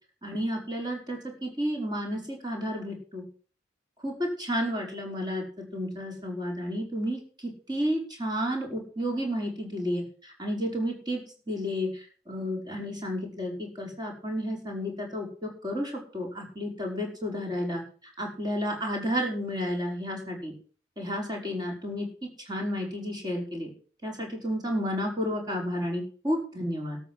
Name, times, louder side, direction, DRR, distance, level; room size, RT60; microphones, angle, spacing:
voice 1, 0.2-3.2 4.0-11.2 11.5-20.5 21.0-23.7 24.0-27.0, equal, 20° right, 0 dB, 5.0 m, -32 dB
13.0 x 6.7 x 7.7 m, 0.42 s
head